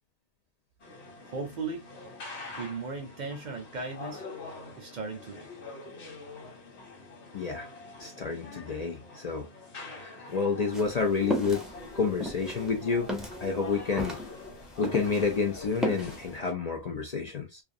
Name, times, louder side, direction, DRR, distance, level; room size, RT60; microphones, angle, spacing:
sound 1, 0.8-16.5, left 2 dB, 90° left, 1.1 m, -44 dB
voice 1, 1.2-1.8 2.6-4.2 4.8-5.5, right 4 dB, 55° right, 0.6 m, -36 dB
voice 2, 7.3-7.7 8.0-9.5 9.9-11.6 11.9-13.1 13.4-14.2 14.8-17.6, left 5 dB, 50° left, 0.5 m, -29 dB
sound 2, 10.7-15.3 15.6-16.2, equal, ahead, 0.4 m, -34 dB
2.4 x 2.3 x 2.5 m
omnidirectional pair, 1.1 m